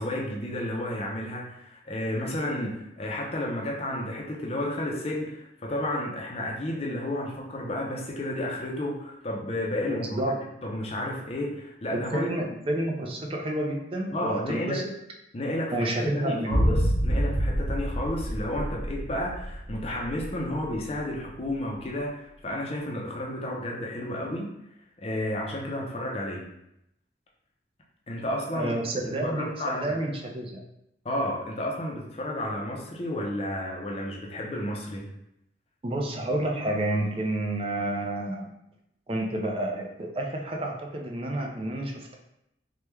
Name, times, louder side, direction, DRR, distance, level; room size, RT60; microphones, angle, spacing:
voice 1, 0.0-10.3 10.6-12.3 14.1-14.8 15.3-24.5 25.0-26.5 28.1-28.7 29.0-30.0 31.0-35.0, left 1 dB, 35° left, -1 dB, 0.5 m, -32 dB
voice 2, 9.9-10.3 11.9-14.8 15.7-16.6 28.5-29.5 29.8-30.6 35.8-38.5 39.1-42.2, right 1 dB, 30° right, 1 dB, 0.4 m, -29 dB
sound 1, 16.5-20.7 21.0-21.1, equal, 90° right, 0.7 m, -27 dB
3.3 x 2.2 x 3.1 m, 0.83 s
head